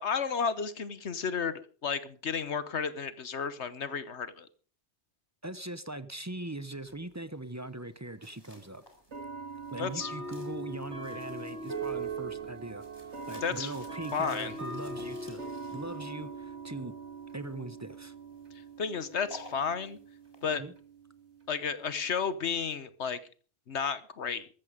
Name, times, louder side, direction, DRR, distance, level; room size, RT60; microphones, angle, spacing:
voice 1, 0.0-4.5 9.8-10.1 13.4-13.7 14.1-14.6 18.8-20.0 20.4-20.6 21.5-23.2 23.7-24.5, left 6 dB, 70° left, 1.4 m, -32 dB
voice 2, 5.4-8.8 9.7-12.8 13.3-15.4 15.7-16.9 17.3-18.1 20.5-20.7, right 2 dB, 15° right, 0.8 m, -40 dB
sound 1, 6.9-7.0 8.1-8.2 9.1-22.3, right 3 dB, 70° right, 3.0 m, -41 dB
sound 2, 8.2-20.5, left 1 dB, 20° left, 4.1 m, -55 dB
14.5 x 13.5 x 5.1 m
omnidirectional pair, 1.2 m